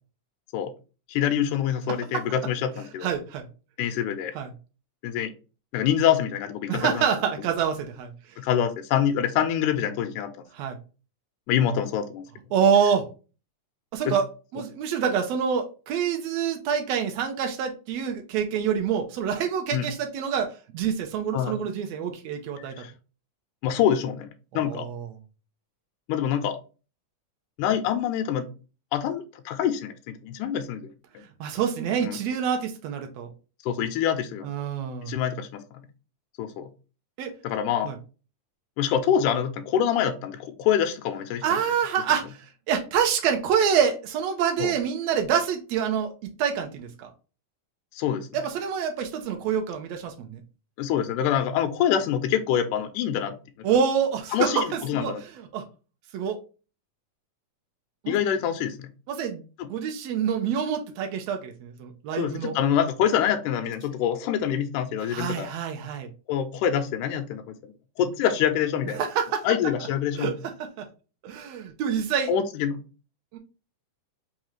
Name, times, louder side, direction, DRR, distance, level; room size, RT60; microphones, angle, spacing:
voice 1, 1.1-3.1 3.8-4.3 5.0-5.3 5.7-7.1 8.4-10.3 11.5-12.2 14.1-14.2 19.7-19.9 21.3-21.6 22.6-22.9 23.6-24.9 26.1-26.6 27.6-28.5 28.9-31.2 32.0-32.2 33.6-34.5 35.0-35.6 36.4-36.7 37.4-37.9 38.8-41.4 44.6-44.7 47.9-48.3 50.8-53.3 54.3-55.2 58.1-58.9 59.6-59.7 62.2-65.5 66.3-69.1 69.4-70.3 72.3-72.8, left 9 dB, 80° left, 2.0 m, -25 dB
voice 2, 3.0-3.5 4.3-4.5 6.7-8.4 10.5-10.8 12.5-13.1 13.9-14.3 14.5-22.7 24.5-25.1 31.4-33.3 34.4-35.1 37.2-37.3 37.8-37.9 41.4-47.1 48.3-50.4 53.6-55.6 56.1-56.4 58.0-58.2 59.1-62.5 65.1-66.1 69.0-69.5 70.1-70.9 71.2-72.3 73.3-73.4, right 7 dB, 80° right, 1.5 m, -27 dB
5.3 x 2.4 x 3.0 m
omnidirectional pair, 3.8 m